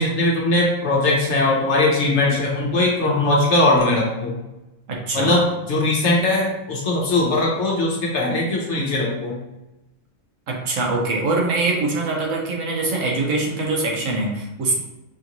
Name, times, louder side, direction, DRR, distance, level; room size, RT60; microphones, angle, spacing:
voice 1, 0.0-4.3 5.1-9.3, left 2 dB, 60° left, -2 dB, 1.2 m, -20 dB
voice 2, 4.9-5.3 10.5-14.8, right 3 dB, 80° right, 0 dB, 1.2 m, -23 dB
4.9 x 2.6 x 3.0 m, 0.96 s
omnidirectional pair, 1.4 m